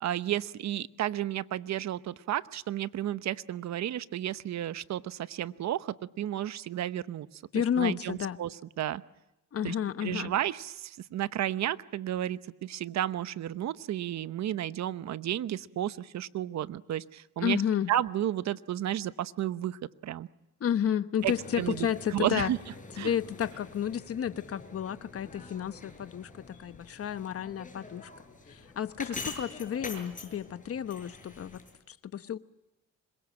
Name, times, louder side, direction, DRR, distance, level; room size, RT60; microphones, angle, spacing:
voice 1, 0.0-7.3 7.8-9.0 9.6-9.8 10.0-17.6 17.9-20.3 21.2-22.6 23.0-23.1, right 12 dB, 65° right, 14 dB, 0.9 m, -32 dB
voice 2, 7.5-8.4 9.5-10.3 17.4-17.9 20.6-22.5 23.0-28.1 28.5-31.6 31.9-32.4, left 9 dB, 50° left, 12 dB, 1.1 m, -31 dB
sound 1, 21.2-31.8, left 3 dB, 25° left, 7.3 m, -45 dB
26.5 x 22.0 x 7.5 m, 0.93 s
cardioid pair, 90°, 30 cm